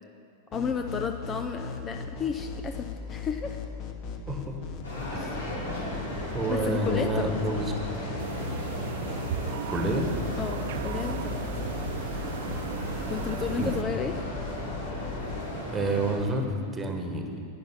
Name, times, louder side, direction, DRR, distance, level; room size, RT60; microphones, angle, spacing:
sound 1, 0.5-15.5, left 6 dB, 40° left, 1.1 m, -38 dB
voice 1, 0.5-3.6 6.5-7.3 10.4-11.4 13.1-14.2, left 6 dB, 25° left, 6 dB, 0.5 m, -32 dB
sound 2, 4.8-16.2, equal, 75° left, 3.0 m, -36 dB
voice 2, 6.3-7.7 9.7-10.1 13.6-13.7 15.7-16.4 16.7-17.4, right 2 dB, 20° right, 4 dB, 1.4 m, -28 dB
sound 3, 8.2-13.8, right 10 dB, 55° right, 0.3 m, -36 dB
11.0 x 9.5 x 5.8 m, 2.4 s
figure-of-eight pair, 90°, 0 cm